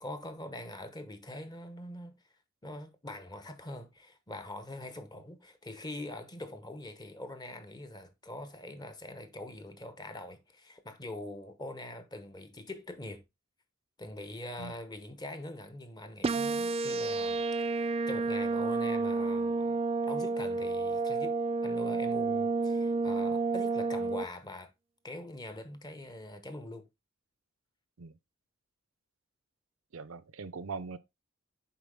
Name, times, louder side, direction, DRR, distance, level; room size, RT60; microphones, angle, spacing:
voice 1, 0.0-2.2 2.6-13.2 14.0-19.8 20.1-21.3 21.6-24.7 25.0-26.9, left 1 dB, 20° left, 0.9 m, -43 dB
sound 1, 16.2-24.2, right 3 dB, 30° right, 0.4 m, -30 dB
voice 2, 29.9-31.0, right 4 dB, 75° right, 0.6 m, -41 dB
7.0 x 4.8 x 3.6 m
head